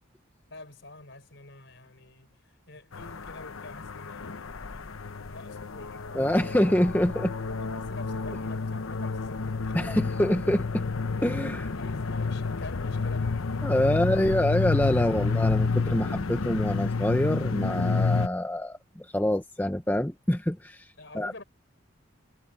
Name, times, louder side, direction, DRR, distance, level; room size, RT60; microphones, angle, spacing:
voice 1, 0.5-6.5 7.6-10.1 11.7-14.4 15.0-15.4 21.0-21.4, left 2 dB, 60° left, 4.9 m, -47 dB
sound 1, 2.9-18.3, left 4 dB, 85° left, 0.9 m, -30 dB
voice 2, 6.1-7.3 9.7-10.8 11.2-11.7 13.6-20.9 21.1-21.3, left 1 dB, 10° left, 0.8 m, -26 dB
head